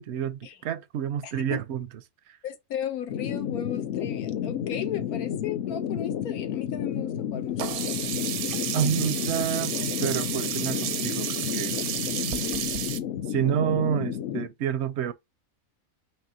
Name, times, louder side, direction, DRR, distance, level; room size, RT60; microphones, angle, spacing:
voice 1, 0.0-1.9 8.7-9.8 10.0-11.7 13.3-15.1, right 9 dB, 65° right, 0.7 m, -28 dB
voice 2, 1.2-1.6 2.4-8.0, left 9 dB, 90° left, 1.3 m, -35 dB
sound 1, 3.1-14.5, left 9 dB, 65° left, 0.7 m, -31 dB
Sink (filling or washing), 7.6-13.0, right 11 dB, 85° right, 1.1 m, -31 dB
5.5 x 2.6 x 2.7 m
omnidirectional pair, 1.5 m